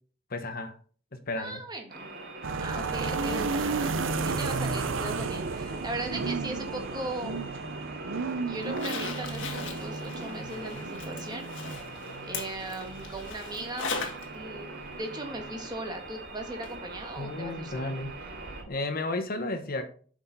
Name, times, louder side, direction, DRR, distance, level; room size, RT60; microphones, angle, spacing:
voice 1, 0.3-0.8 1.1-1.6 17.2-18.2 18.7-19.9, left 2 dB, 50° left, 7 dB, 1.1 m, -33 dB
voice 2, 1.4-2.1 2.6-7.8 8.5-11.5 12.2-13.9 14.3-14.7 15.0-18.0, right 1 dB, 20° right, 3 dB, 1.6 m, -38 dB
sound 1, 1.9-18.6, right 2 dB, 65° right, 3.0 m, -43 dB
sound 2, 2.4-18.7, right 4 dB, 85° right, 0.7 m, -34 dB
Zipper (clothing), 8.6-14.3 14.6-14.7 16.6-16.7 17.1-17.2, left 4 dB, 70° left, 2.0 m, -39 dB
8.1 x 6.2 x 4.0 m, 0.43 s
head